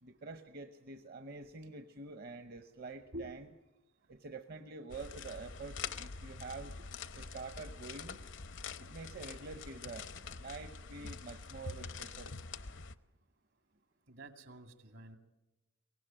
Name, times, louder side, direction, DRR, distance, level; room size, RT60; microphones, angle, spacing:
voice 1, 0.0-3.5 4.1-6.7 7.1-8.2 8.8-10.1 10.4-12.4, right 3 dB, 50° right, 8 dB, 0.9 m, -47 dB
sound 1, 4.9-12.9, left 5 dB, 65° left, 0.8 m, -45 dB
voice 2, 14.1-15.2, right 1 dB, 75° right, 7 dB, 2.3 m, -47 dB
23.0 x 18.0 x 8.9 m, 1.0 s
head